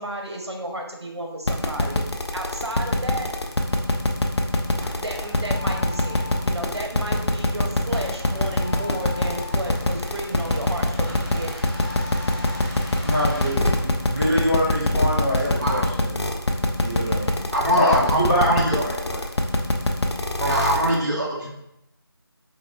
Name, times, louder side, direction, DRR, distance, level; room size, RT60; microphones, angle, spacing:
voice 1, 0.0-2.0 2.3-3.3 4.9-11.7, right 1 dB, 85° right, 1 dB, 1.0 m, -33 dB
sound 1, 1.5-20.9, left 2 dB, 90° left, 0.6 m, -23 dB
sound 2, 3.4-14.9, left 1 dB, 20° right, 1.0 m, -39 dB
voice 2, 13.0-16.2 16.8-17.3 17.7-19.2, equal, 15° left, -11 dB, 1.0 m, -24 dB
voice 3, 17.5-18.8 20.4-21.5, equal, 45° right, -4 dB, 1.0 m, -23 dB
4.0 x 3.3 x 2.4 m, 0.82 s
figure-of-eight pair, 170°, 14 cm